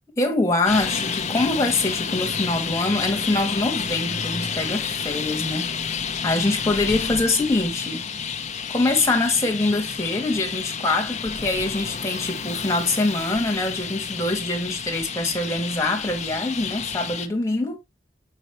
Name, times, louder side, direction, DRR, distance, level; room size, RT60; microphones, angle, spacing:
voice 1, 0.2-8.1 8.7-17.8, left 2 dB, 15° left, 1.8 m, -24 dB
Traffic noise roadway noise, 0.7-17.3, left 6 dB, 40° left, 0.9 m, -30 dB
5.6 x 5.5 x 3.1 m
head